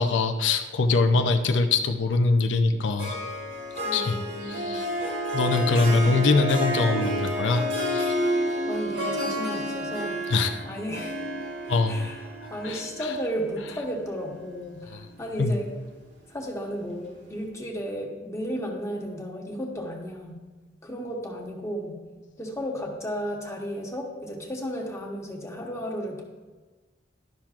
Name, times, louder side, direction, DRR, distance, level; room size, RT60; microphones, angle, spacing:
voice 1, 0.0-3.2 3.9-4.2 4.4-4.9 5.3-7.6 7.9-8.1 10.3-10.6 11.7-12.1 12.6-12.8 14.9-15.1 15.4-15.5, left 3 dB, 85° left, 7 dB, 0.5 m, -23 dB
Harp, 3.0-14.4, equal, 85° right, 2.1 m, -30 dB
voice 2, 3.8-4.8 5.9-6.2 8.7-10.2 10.6-11.2 11.9-15.7 16.3-20.3 20.8-22.0 22.4-26.2, equal, 15° left, -1 dB, 1.0 m, -34 dB
12.0 x 5.8 x 2.4 m, 1.3 s
head